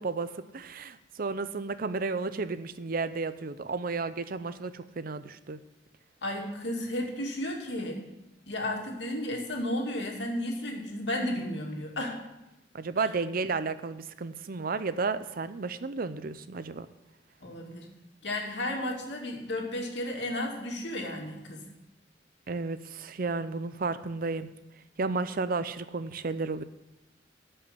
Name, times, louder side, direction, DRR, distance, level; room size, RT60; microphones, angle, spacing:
voice 1, 0.0-5.6 12.7-16.9 22.5-24.5 25.0-26.6, right 4 dB, 55° right, 13 dB, 0.6 m, -32 dB
voice 2, 6.2-8.0 8.5-12.2 17.4-17.9 18.2-21.6, left 1 dB, 70° left, 0 dB, 2.5 m, -33 dB
13.0 x 5.6 x 8.3 m, 0.95 s
head